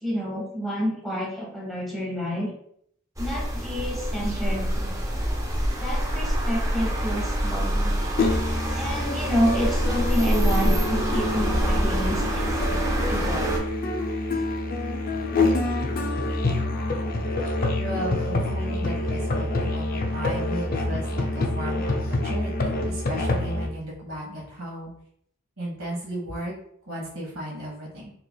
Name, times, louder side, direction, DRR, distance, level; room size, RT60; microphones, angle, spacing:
voice 1, 0.0-2.5 3.2-5.0 5.8-8.1 8.7-13.5, equal, ahead, -3 dB, 0.9 m, -29 dB
sound 1, 3.2-13.6, equal, 15° right, 0.5 m, -26 dB
Musical instrument, 8.2-23.7, left 2 dB, 45° left, 0.4 m, -27 dB
voice 2, 17.8-24.9 25.6-26.5 26.9-28.1, right 1 dB, 85° right, -3 dB, 1.3 m, -35 dB
3.2 x 2.8 x 2.2 m, 0.67 s
head